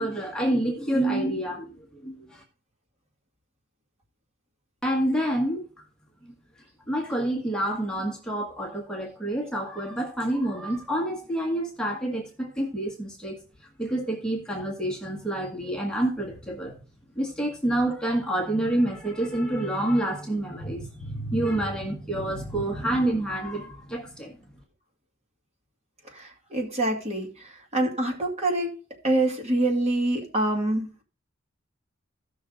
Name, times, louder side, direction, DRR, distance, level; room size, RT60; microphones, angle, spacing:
voice 1, 0.0-1.7 1.9-2.4 4.8-5.7 6.9-13.4 13.8-16.8 17.1-24.3, right 1 dB, 5° left, -1 dB, 1.5 m, -28 dB
voice 2, 26.1-28.7 29.0-30.9, right 1 dB, 35° right, 1 dB, 2.3 m, -26 dB
15.0 x 6.1 x 3.8 m, 0.35 s
head